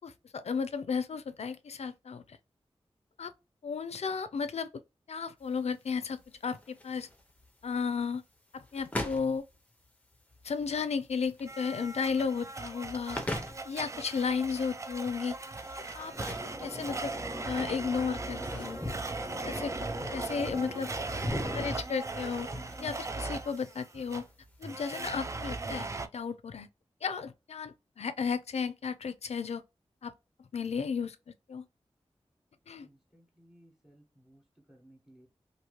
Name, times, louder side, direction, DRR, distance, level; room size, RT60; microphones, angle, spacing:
voice 1, 0.0-2.2 3.2-3.3 3.6-4.7 5.1-7.1 7.6-8.2 8.5-9.4 10.4-13.2 13.6-15.3 15.9-16.3 16.6-17.1 17.4-18.8 19.4-20.9 21.5-22.5 22.8-24.3 24.6-25.9 26.1-26.7 27.0-29.6 30.0-30.1 30.5-31.2 31.5-31.6 32.7-32.9, left 5 dB, 80° left, 0.4 m, -34 dB
sound 1, 5.4-24.6, left 1 dB, 15° left, 0.7 m, -43 dB
Domestic sounds home sounds, 11.5-26.1, right 3 dB, 30° right, 0.3 m, -39 dB
sound 2, 16.1-21.8, equal, 55° right, 1.3 m, -42 dB
voice 2, 32.8-34.4 34.7-35.3, right 1 dB, 5° right, 1.1 m, -60 dB
2.8 x 2.6 x 2.9 m
wide cardioid pair, 95°, 11 cm